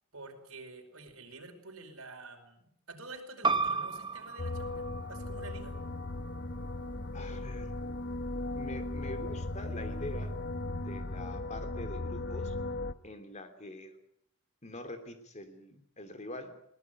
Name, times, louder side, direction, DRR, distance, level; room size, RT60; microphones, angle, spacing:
voice 1, 0.1-5.8, right 3 dB, 70° right, 4 dB, 5.0 m, -48 dB
sound 1, 3.4-8.6, right 4 dB, 20° right, 1.1 m, -36 dB
sound 2, 4.4-12.9, left 2 dB, 50° left, 1.1 m, -37 dB
voice 2, 7.1-7.7 8.6-10.3 10.7-12.5 13.0-13.9 14.6-16.6, left 1 dB, 30° left, 9 dB, 3.1 m, -44 dB
22.5 x 18.5 x 9.0 m, 0.72 s
head